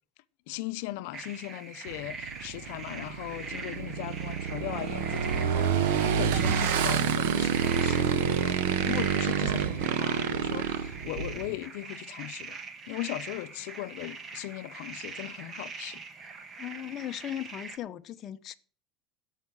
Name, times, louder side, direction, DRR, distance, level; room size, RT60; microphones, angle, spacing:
voice 1, 0.5-12.6 12.9-16.0, left 17 dB, 80° left, 0.7 m, -38 dB
sound 1, 1.1-17.8, right 4 dB, 30° right, 1.4 m, -42 dB
Motorcycle / Engine, 1.9-11.6, right 8 dB, 90° right, 1.1 m, -28 dB
voice 2, 16.6-18.5, left 11 dB, 40° left, 0.6 m, -37 dB
14.0 x 5.7 x 7.3 m
supercardioid pair, 135°, 0 cm